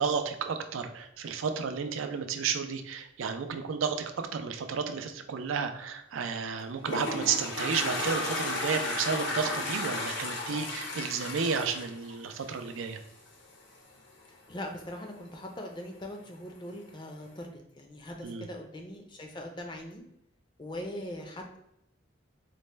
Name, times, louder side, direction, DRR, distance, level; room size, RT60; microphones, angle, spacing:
voice 1, 0.0-13.0 18.2-18.5, right 6 dB, 85° right, 7 dB, 0.4 m, -32 dB
Toilet flush, 6.5-12.9, left 2 dB, 65° left, 0.7 m, -34 dB
voice 2, 14.5-20.0 20.6-21.6, left 1 dB, 25° left, 3 dB, 0.4 m, -41 dB
4.1 x 2.1 x 3.2 m, 0.81 s
head